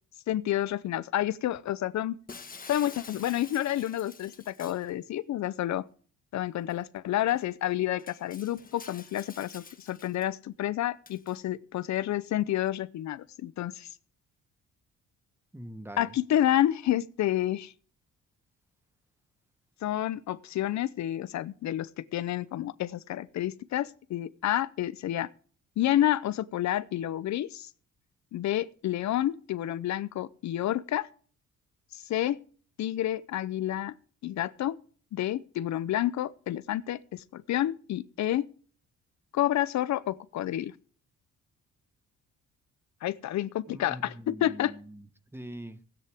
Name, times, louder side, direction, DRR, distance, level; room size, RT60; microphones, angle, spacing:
voice 1, 0.3-2.2 2.7-5.8 6.3-13.9 16.0-17.7 19.8-25.3 25.8-27.7 28.3-31.1 31.9-32.4 32.8-33.9 34.2-34.8 35.1-38.5 39.3-40.7 43.0-44.7, left 13 dB, 65° left, 0.7 m, -29 dB
Shatter, 2.3-4.9 6.7-6.8 7.3-7.4 8.0-10.3 11.1-11.4, left 5 dB, 30° left, 1.4 m, -48 dB
voice 2, 15.5-16.1 43.7-45.1 45.3-45.8, right 1 dB, 10° right, 1.2 m, -43 dB
16.5 x 9.7 x 3.6 m
cardioid pair, 90°, 30 cm